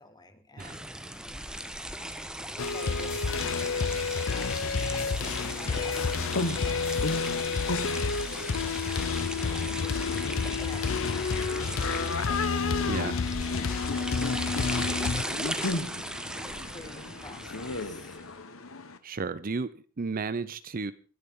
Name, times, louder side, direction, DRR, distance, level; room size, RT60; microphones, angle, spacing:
voice 1, 0.0-1.7 2.0-2.5 2.7-10.2 10.6-15.7 16.4-18.2, left 2 dB, 20° left, 8 dB, 1.9 m, -51 dB
sound 1, 0.6-18.3, right 1 dB, 5° right, 1.1 m, -38 dB
sound 2, 2.6-15.2, left 5 dB, 70° left, 0.6 m, -30 dB
sound 3, 5.3-19.0, left 3 dB, 85° left, 1.3 m, -36 dB
voice 2, 12.9-13.2 19.0-20.9, right 4 dB, 45° right, 15 dB, 0.6 m, -33 dB
24.5 x 11.0 x 3.7 m, 0.36 s
head